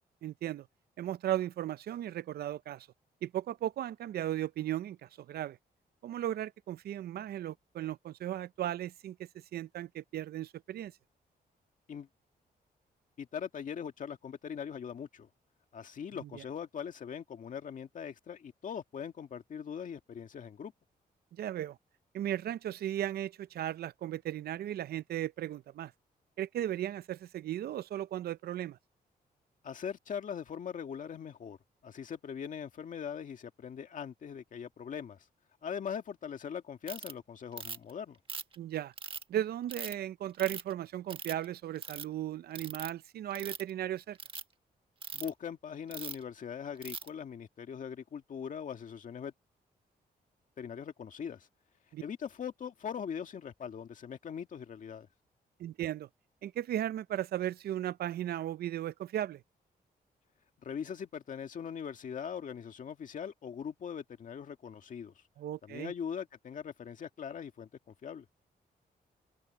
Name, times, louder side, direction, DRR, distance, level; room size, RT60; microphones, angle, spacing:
voice 1, 0.2-0.7 1.0-2.9 3.2-5.6 6.0-10.9 16.2-16.4 21.3-21.8 22.1-25.9 26.4-28.8 38.6-38.9 39.3-44.2 51.9-52.0 55.6-56.1 56.4-59.4 65.4-65.9, right 12 dB, 75° right, 0.5 m, -36 dB
voice 2, 13.2-15.3 15.7-20.7 29.6-31.6 31.8-35.3 35.6-38.2 45.1-49.3 50.6-51.5 52.0-55.1 60.6-65.2 65.6-67.7 68.0-68.3, left 7 dB, 55° left, 2.0 m, -41 dB
Ratchet pawl, 36.9-37.1 37.6-37.9 38.3-39.2 39.7-39.9 40.4-40.7 41.1-41.4 41.8-42.0 42.5-42.9 43.3-43.7 44.1-44.4 45.0-45.3 45.9-46.2 46.8-47.1, right 5 dB, 35° right, 1.5 m, -41 dB
wide cardioid pair, 160°, 16 cm